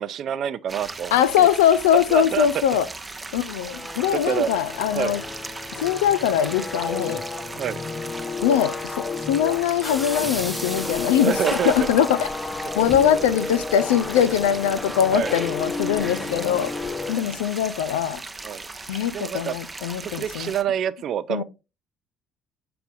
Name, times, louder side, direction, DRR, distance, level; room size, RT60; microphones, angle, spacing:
voice 1, 0.0-1.5 1.9-2.5 4.1-4.6 4.9-5.2 7.5-7.8 11.2-11.7 15.1-15.3 18.4-18.7 19.1-19.6 20.0-21.4, right 9 dB, 55° right, 0.4 m, -27 dB
sound 1, 0.7-20.6, right 3 dB, 20° right, 0.7 m, -38 dB
voice 2, 1.1-2.9 3.3-5.2 5.8-7.2 8.4-8.8 9.3-11.3 11.6-12.3 12.8-16.7 17.1-18.2 18.9-20.5 21.3-21.4, left 10 dB, 75° left, 0.4 m, -21 dB
sound 2, 3.7-17.8, left 4 dB, 30° left, 0.7 m, -33 dB
sound 3, 9.8-17.1, right 1 dB, ahead, 1.0 m, -36 dB
6.7 x 6.6 x 2.5 m
figure-of-eight pair, 50°, 0 cm